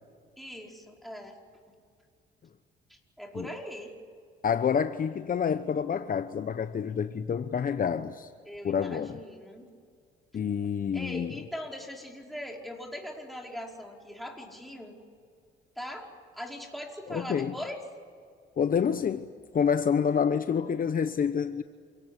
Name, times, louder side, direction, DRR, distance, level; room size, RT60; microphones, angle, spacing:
voice 1, 0.4-1.4 2.9-3.9 8.4-9.7 10.9-15.0 15.7-16.1 16.3-17.8, equal, ahead, 5.2 m, -40 dB
voice 2, 4.4-8.3 8.6-9.2 10.3-11.4 17.1-17.6 18.6-21.6, left 7 dB, 45° left, 0.9 m, -28 dB
28.0 x 18.5 x 9.9 m
cardioid pair, 90°, 20 cm